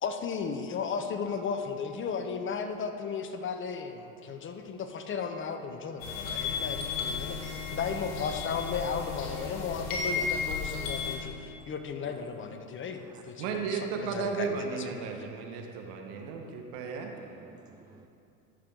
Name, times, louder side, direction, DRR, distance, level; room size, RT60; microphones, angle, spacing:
voice 1, 0.0-14.9, left 6 dB, 30° left, 7 dB, 0.8 m, -35 dB
sound 1, 6.0-11.2, left 5 dB, 70° left, 2.1 m, -34 dB
voice 2, 12.8-13.6 16.1-16.5 17.1-18.1, right 4 dB, 10° right, 4 dB, 0.3 m, -55 dB
voice 3, 13.4-17.2, right 5 dB, 65° right, 3 dB, 1.4 m, -34 dB
14.0 x 6.5 x 3.8 m, 2.7 s
hypercardioid pair, 85°, 40 cm